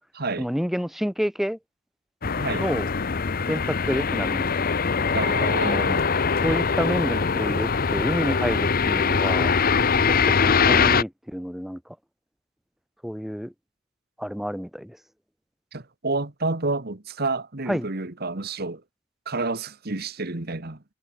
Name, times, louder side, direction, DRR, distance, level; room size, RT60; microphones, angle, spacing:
voice 1, 0.4-1.6 2.6-2.9 3.5-4.7 5.6-5.8 6.4-9.5 9.9-11.8 13.0-13.5 14.2-15.0 17.7-17.9, equal, ahead, 0.8 m, -29 dB
sound 1, 2.2-11.0, left 5 dB, 45° left, 0.8 m, -22 dB
voice 2, 2.4-2.7 5.1-6.1 15.7-18.8 19.3-20.8, right 3 dB, 50° right, 1.7 m, -29 dB
head